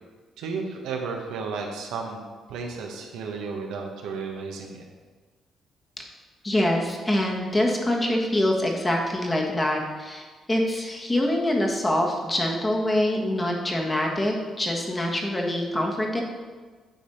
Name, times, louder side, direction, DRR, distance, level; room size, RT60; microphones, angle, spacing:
voice 1, 0.4-4.8, right 4 dB, 90° right, 2 dB, 1.1 m, -33 dB
voice 2, 6.4-16.2, left 1 dB, 20° left, 0 dB, 1.4 m, -25 dB
9.2 x 3.4 x 5.6 m, 1.4 s
cardioid pair, 90°, 0 cm